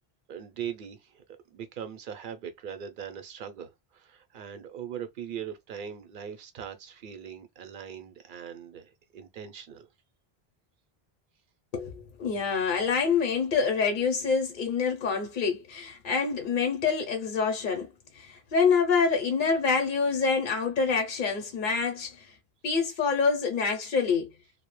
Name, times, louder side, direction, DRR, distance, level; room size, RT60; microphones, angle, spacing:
voice 1, 0.3-1.2 1.5-9.9, right 8 dB, 60° right, 0.7 m, -40 dB
voice 2, 11.7-17.9 18.2-22.3 22.6-24.3, left 5 dB, 60° left, 0.7 m, -26 dB
2.2 x 2.1 x 3.0 m
omnidirectional pair, 1.0 m